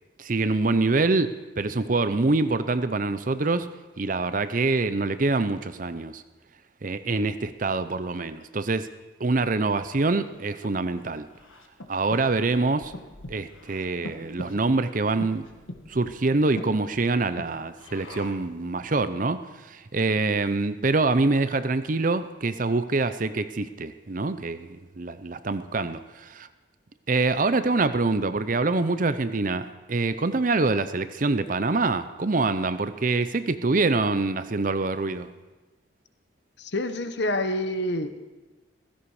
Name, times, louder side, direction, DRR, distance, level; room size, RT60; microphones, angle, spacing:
voice 1, 0.2-3.7 4.0-6.2 6.8-8.9 9.2-11.3 11.9-12.9 13.3-15.5 15.9-26.5 27.1-35.3, right 3 dB, 40° right, 12 dB, 0.6 m, -25 dB
Breathing, 10.1-18.6, left 1 dB, 90° left, 1.6 m, -43 dB
voice 2, 36.6-38.2, left 1 dB, 60° left, 9 dB, 1.1 m, -27 dB
16.0 x 15.5 x 4.9 m, 1.2 s
head